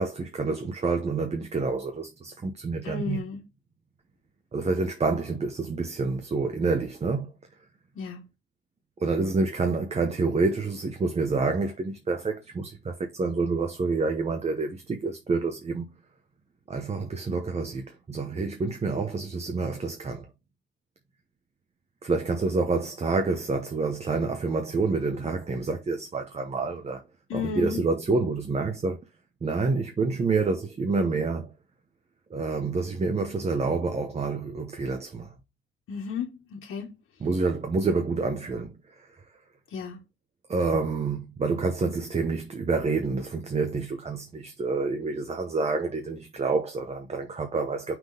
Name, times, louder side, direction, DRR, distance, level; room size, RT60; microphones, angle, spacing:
voice 1, 0.0-3.2 4.5-7.3 9.0-15.8 16.7-20.3 22.0-27.0 27.3-29.0 29.4-31.5 32.3-35.3 37.2-38.7 40.5-47.9, right 3 dB, 30° right, 1.0 m, -28 dB
voice 2, 2.8-3.4 7.9-8.2 27.3-27.8 35.9-36.9 39.7-40.0, left 5 dB, 85° left, 1.7 m, -33 dB
6.0 x 3.8 x 5.0 m
cardioid pair, 125°, 21 cm